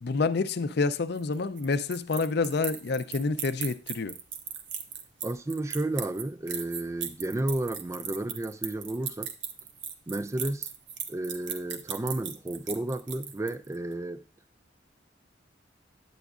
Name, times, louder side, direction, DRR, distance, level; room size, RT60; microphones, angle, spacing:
voice 1, 0.0-4.1, left 4 dB, 60° left, 0.5 m, -28 dB
sound 1, 1.2-13.8, right 8 dB, 80° right, 0.8 m, -37 dB
voice 2, 5.2-9.3 10.1-10.7 11.1-14.2, right 1 dB, 15° right, 0.3 m, -32 dB
10.0 x 8.1 x 2.4 m
head